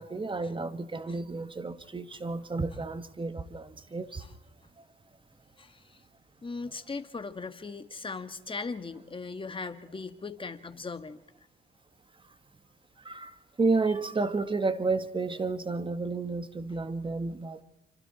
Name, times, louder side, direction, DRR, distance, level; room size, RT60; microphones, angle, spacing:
voice 1, 0.0-4.3 4.8-4.9 13.0-17.6, right 3 dB, 25° right, 1.8 m, -31 dB
voice 2, 5.6-6.0 6.4-11.2, left 4 dB, 25° left, 2.0 m, -38 dB
27.5 x 25.5 x 4.4 m
cardioid pair, 90°, 20 cm